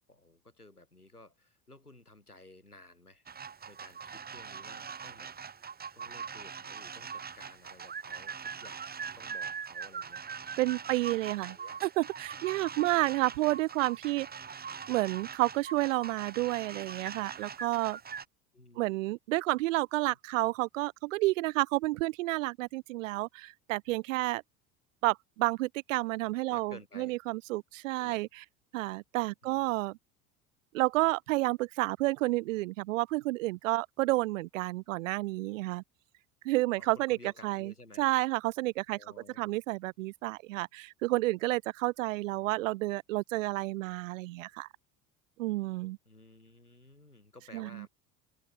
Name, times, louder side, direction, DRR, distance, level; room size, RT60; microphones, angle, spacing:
voice 1, 0.1-3.2 3.7-5.3 5.6-10.2 10.9-11.8 12.8-13.1 18.5-19.0 20.0-20.2 26.5-27.1 28.0-28.2 29.4-29.8 36.8-38.0 38.9-39.5 42.4-42.5 46.1-47.9, left 2 dB, 85° left, 7.3 m, -55 dB
sound 1, 3.3-18.2, right 6 dB, 20° right, 1.9 m, -42 dB
voice 2, 10.6-11.6 11.8-14.3 14.9-18.0 18.8-24.4 25.0-28.3 28.7-30.0 30.7-35.8 36.4-37.2 37.4-37.7 38.0-39.0 39.4-44.7 45.4-46.0 47.5-47.9, right 19 dB, 60° right, 0.8 m, -30 dB
figure-of-eight pair, 70°, 44 cm